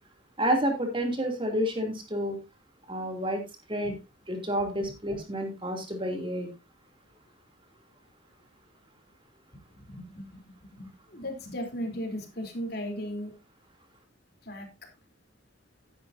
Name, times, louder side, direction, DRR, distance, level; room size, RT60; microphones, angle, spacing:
voice 1, 0.4-2.4 2.9-3.4 3.7-4.0 4.3-6.5, equal, 25° right, 3 dB, 2.8 m, -29 dB
voice 2, 9.7-10.4 10.8-13.3 14.4-14.7, equal, 50° left, 3 dB, 3.5 m, -36 dB
13.5 x 10.5 x 2.7 m, 0.26 s
head